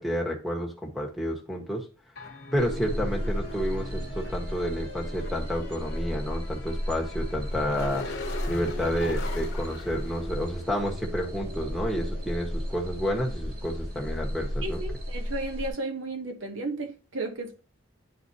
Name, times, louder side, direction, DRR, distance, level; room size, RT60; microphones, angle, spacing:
voice 1, 0.0-1.9 2.5-8.1 8.5-14.8, equal, ahead, 1.4 m, -30 dB
sound 1, 2.2-10.9, left 2 dB, 55° left, 1.2 m, -41 dB
sound 2, 2.6-15.7, equal, 50° right, 2.6 m, -34 dB
voice 2, 14.6-17.6, right 2 dB, 75° right, 1.1 m, -34 dB
11.0 x 4.2 x 2.8 m
head